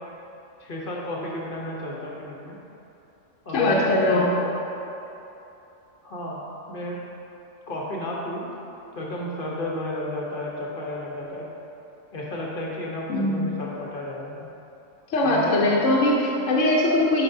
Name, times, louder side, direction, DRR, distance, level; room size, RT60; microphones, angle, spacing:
voice 1, 0.6-2.6 3.4-4.5 6.0-6.4 6.7-7.0 7.7-8.4 8.9-11.4 12.1-14.4 15.2-15.6, left 1 dB, 45° left, -4 dB, 1.0 m, -32 dB
voice 2, 3.5-4.3 13.1-13.5 15.1-17.2, left 1 dB, 70° left, -4 dB, 1.1 m, -21 dB
9.5 x 5.1 x 2.7 m, 3.0 s
omnidirectional pair, 1.4 m